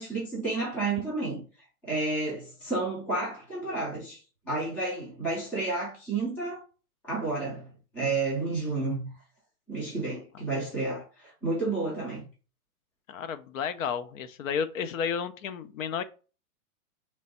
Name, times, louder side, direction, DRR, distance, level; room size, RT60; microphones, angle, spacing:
voice 1, 0.0-1.4 1.8-6.6 7.0-9.1 9.7-12.3, right 3 dB, 5° left, 0.4 m, -31 dB
voice 2, 13.1-16.0, left 7 dB, 65° left, 0.6 m, -32 dB
3.4 x 3.1 x 4.1 m
hypercardioid pair, 150°, 44 cm